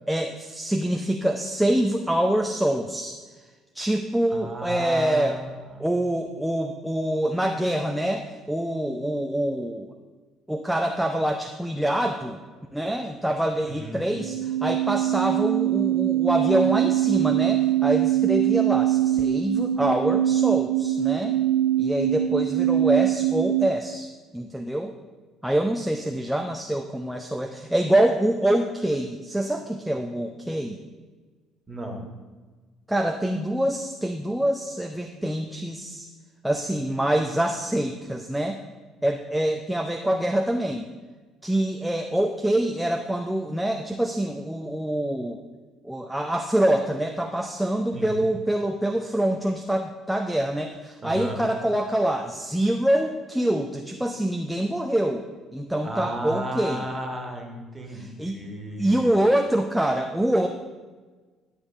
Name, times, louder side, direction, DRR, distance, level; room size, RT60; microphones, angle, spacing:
voice 1, 0.1-3.2 3.7-5.4 5.8-9.9 10.5-12.4 12.7-21.4 21.8-24.9 25.4-30.8 32.9-36.1 36.4-38.6 39.0-40.9 41.4-45.4 45.8-56.9 57.9-58.4 58.8-60.5, right 1 dB, 5° right, 4 dB, 0.6 m, -25 dB
voice 2, 4.3-5.9 13.6-14.0 31.7-32.1 47.9-48.2 51.0-51.4 55.8-59.2, right 1 dB, 20° right, 2 dB, 1.8 m, -34 dB
sound 1, 14.1-23.7, right 13 dB, 70° right, 0.7 m, -23 dB
11.0 x 7.7 x 3.7 m, 1.4 s
figure-of-eight pair, 50°, 0 cm